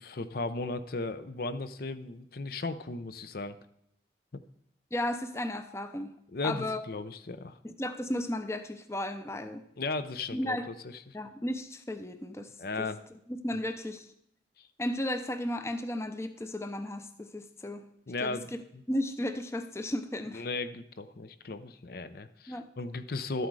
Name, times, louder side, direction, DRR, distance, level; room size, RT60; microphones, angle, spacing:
voice 1, 0.0-3.6 6.3-7.6 9.8-11.2 12.6-13.0 14.6-14.7 18.1-18.8 20.3-23.5, left 3 dB, 55° left, 11 dB, 0.6 m, -36 dB
voice 2, 4.9-6.1 6.4-6.8 7.6-9.6 10.3-10.7 11.1-12.5 12.8-12.9 13.4-14.1 14.8-17.8 18.2-18.4 18.9-20.4 22.5-22.7, left 1 dB, 15° left, 9 dB, 0.6 m, -34 dB
12.5 x 7.8 x 4.8 m, 0.76 s
head